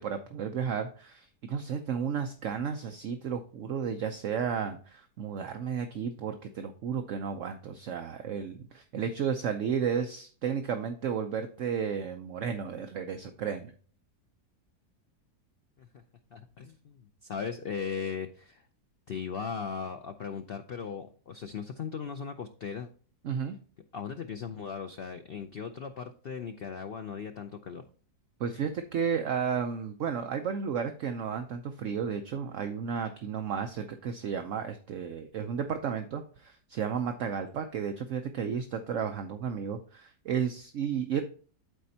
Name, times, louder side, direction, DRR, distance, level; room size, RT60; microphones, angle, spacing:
voice 1, 0.0-13.7 23.2-23.5 28.4-41.2, right 7 dB, 60° right, 6 dB, 0.9 m, -33 dB
voice 2, 16.3-18.7 19.1-22.9 23.3-23.4 23.9-27.8, left 6 dB, 85° left, 7 dB, 0.5 m, -38 dB
12.5 x 4.3 x 2.7 m, 0.42 s
omnidirectional pair, 1.7 m